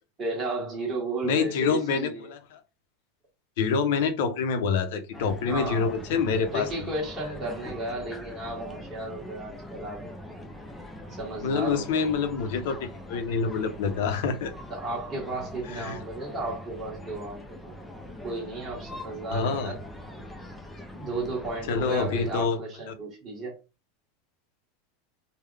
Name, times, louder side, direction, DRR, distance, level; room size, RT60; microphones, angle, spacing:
voice 1, 0.2-2.3 5.5-5.9 6.3-10.1 11.1-12.1 14.7-17.7 18.2-19.8 20.9-23.6, right 2 dB, 20° right, 1.5 m, -34 dB
voice 2, 1.2-2.6 3.6-6.9 11.4-14.5 15.7-16.0 19.3-19.7 21.7-22.6 22.9-23.0, left 5 dB, 60° left, 0.6 m, -27 dB
sound 1, 5.1-22.4, left 1 dB, 5° left, 0.4 m, -42 dB
3.7 x 2.1 x 3.3 m
supercardioid pair, 175°, 0 cm